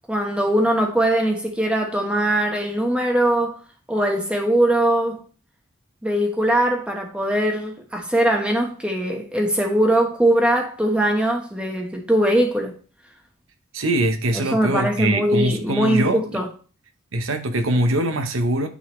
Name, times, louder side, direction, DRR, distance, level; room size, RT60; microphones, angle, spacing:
voice 1, 0.1-3.6 3.9-5.2 6.0-12.7 14.3-16.5, right 1 dB, 5° right, 1.1 m, -21 dB
voice 2, 13.7-16.4 17.1-18.7, right 1 dB, 70° right, 0.9 m, -22 dB
9.6 x 3.9 x 3.1 m
head